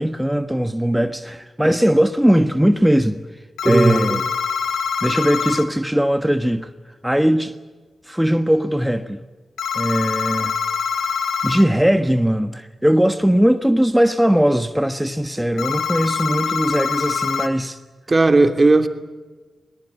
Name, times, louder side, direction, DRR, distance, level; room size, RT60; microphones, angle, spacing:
voice 1, 0.0-3.2 3.6-4.2 5.0-6.7 7.0-7.5 8.0-9.2 9.7-10.5 11.4-17.8, equal, 5° right, 1.4 m, -19 dB
sound 1, 3.6-5.6 9.6-11.6 15.6-17.5, left 6 dB, 90° left, 1.6 m, -24 dB
voice 2, 3.6-4.2 18.1-18.9, right 3 dB, 40° right, 2.9 m, -15 dB
21.0 x 20.0 x 10.0 m
supercardioid pair, 40°, 0 cm